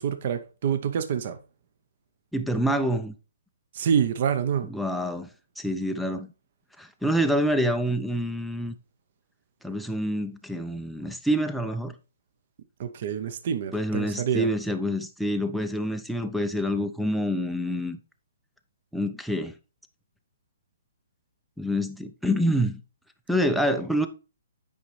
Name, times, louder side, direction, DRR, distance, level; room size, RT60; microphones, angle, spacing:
voice 1, 0.0-1.4 3.7-4.7 12.8-14.5, right 8 dB, 40° right, 0.7 m, -27 dB
voice 2, 2.3-3.1 4.7-5.3 5.6-6.3 6.8-8.7 9.6-11.9 13.7-18.0 18.9-19.5 21.6-22.8 23.3-24.1, equal, ahead, 0.4 m, -27 dB
8.7 x 5.2 x 3.2 m
hypercardioid pair, 170°, 0 cm